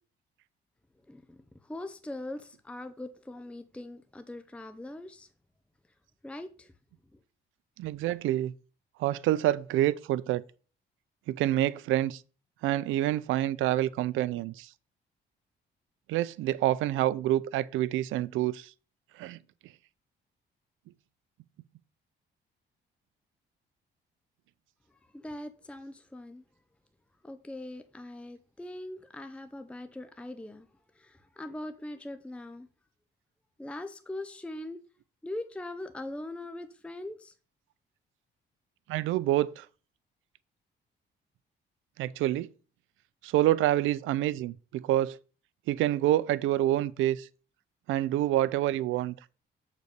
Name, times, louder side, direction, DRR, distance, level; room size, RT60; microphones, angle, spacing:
voice 1, 1.1-5.3 6.2-6.7 7.1-7.2 24.9-26.5 27.2-30.7 30.9-32.7 33.6-34.8 35.2-37.3, left 1 dB, 5° left, 0.7 m, -41 dB
voice 2, 7.8-8.5 9.0-10.4 11.3-12.2 12.6-14.7 16.1-18.7 19.2-19.4 38.9-39.7 42.0-42.5 43.2-45.2 45.7-47.3 47.9-49.1, right 14 dB, 85° right, 0.5 m, -27 dB
6.8 x 4.1 x 6.5 m
cardioid pair, 90°, 20 cm